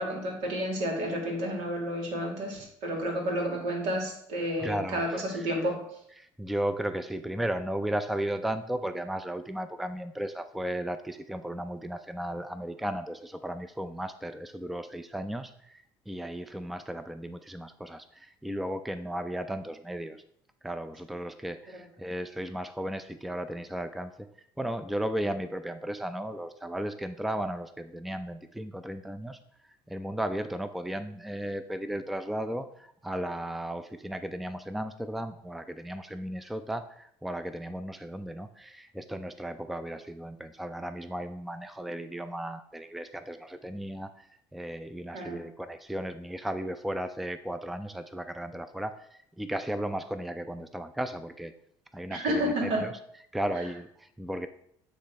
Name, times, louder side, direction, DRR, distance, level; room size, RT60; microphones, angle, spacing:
voice 1, 0.0-5.8 21.7-21.8 45.1-45.5 52.1-52.9, equal, 80° right, 1 dB, 2.1 m, -31 dB
voice 2, 4.6-5.5 6.2-20.2 20.6-24.3 24.6-29.4 29.9-51.5 51.9-52.9 53.3-54.5, right 1 dB, ahead, 10 dB, 0.4 m, -35 dB
8.6 x 3.1 x 4.5 m, 0.69 s
cardioid pair, 100°, 10 cm